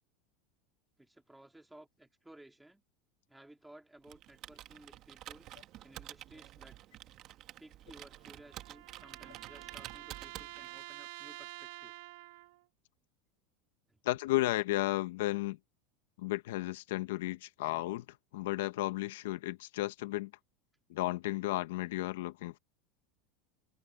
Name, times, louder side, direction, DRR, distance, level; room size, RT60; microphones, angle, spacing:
voice 1, 1.0-2.8 3.3-5.5 5.8-6.8 7.6-11.9 13.9-14.0, right 1 dB, 5° right, 3.4 m, -57 dB
Computer keyboard, 4.0-10.9, right 14 dB, 35° right, 1.4 m, -50 dB
sound 1, 7.9-12.6, right 19 dB, 65° right, 1.5 m, -49 dB
voice 2, 14.0-15.6 16.2-18.0 18.3-20.3 20.9-22.6, left 17 dB, 80° left, 1.1 m, -33 dB
supercardioid pair, 160°, 0 cm